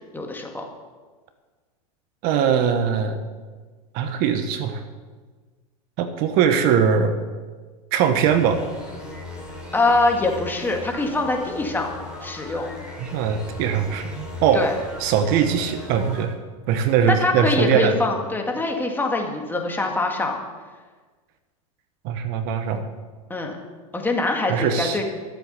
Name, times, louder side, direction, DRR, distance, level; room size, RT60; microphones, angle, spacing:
voice 1, 0.1-0.6 9.7-11.9 12.2-12.7 14.5-14.7 17.1-20.4 23.3-23.6 23.9-25.0, left 2 dB, 10° left, 2 dB, 2.0 m, -23 dB
voice 2, 2.2-3.2 3.9-4.8 6.0-7.2 7.9-8.6 13.0-14.7 15.0-16.4 16.7-18.0 22.0-22.8 24.5-25.0, right 7 dB, 55° right, 9 dB, 1.1 m, -21 dB
sound 1, 8.2-16.2, left 2 dB, 5° right, 3.5 m, -38 dB
13.0 x 7.9 x 6.9 m, 1.4 s
hypercardioid pair, 110°, 19 cm